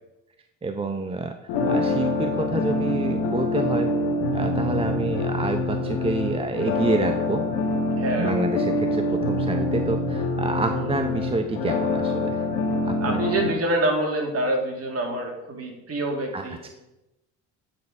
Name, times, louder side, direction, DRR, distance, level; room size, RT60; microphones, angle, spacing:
voice 1, 0.6-1.3 1.7-3.9 4.3-7.4 8.2-12.4 12.8-13.2 16.3-16.7, right 3 dB, 15° right, 6 dB, 0.6 m, -28 dB
sound 1, 1.5-13.5, left 2 dB, 90° left, 1.3 m, -25 dB
voice 2, 8.0-8.4 10.7-10.9 13.0-16.7, right 1 dB, 45° right, 1 dB, 2.2 m, -26 dB
9.4 x 4.3 x 4.7 m, 0.95 s
supercardioid pair, 80°, 34 cm